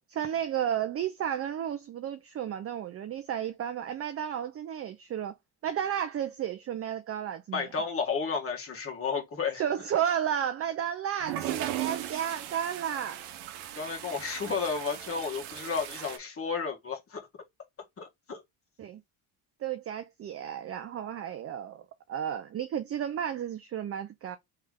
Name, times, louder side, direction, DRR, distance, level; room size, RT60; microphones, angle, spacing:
voice 1, 0.1-5.4 5.6-7.7 9.5-13.2 18.8-19.0 19.6-24.4, right 9 dB, 30° right, 0.5 m, -32 dB
voice 2, 7.5-9.6 13.8-17.3 18.0-18.4, left 5 dB, 30° left, 1.7 m, -32 dB
sound 1, 11.2-16.2, right 13 dB, 75° right, 1.0 m, -37 dB
3.4 x 3.3 x 3.6 m
cardioid pair, 140°, 48 cm